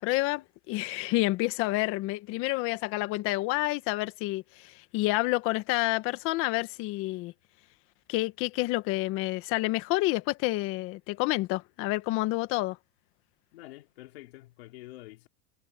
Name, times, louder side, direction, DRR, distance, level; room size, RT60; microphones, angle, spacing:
voice 1, 0.0-7.3 8.1-12.8, left 20 dB, 40° left, 1.6 m, -29 dB
voice 2, 13.5-15.3, left 18 dB, 70° left, 3.7 m, -47 dB
supercardioid pair, 150°, 32 cm